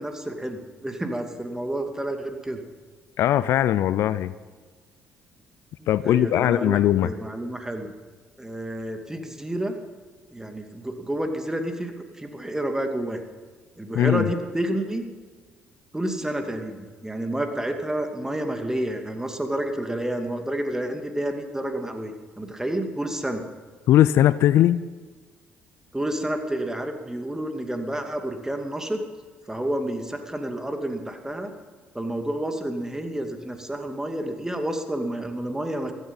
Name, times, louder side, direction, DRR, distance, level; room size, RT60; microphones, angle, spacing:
voice 1, 0.0-2.6 5.8-7.9 8.4-9.8 10.3-13.2 13.8-15.0 15.9-23.4 25.9-29.0 29.5-31.5 31.9-35.9, right 1 dB, 10° right, 5 dB, 2.4 m, -30 dB
voice 2, 3.2-4.3 5.9-7.1 13.9-14.3 23.9-24.8, left 12 dB, 60° left, 17 dB, 0.4 m, -19 dB
16.0 x 14.0 x 5.6 m, 1.5 s
hypercardioid pair, 50°, 5 cm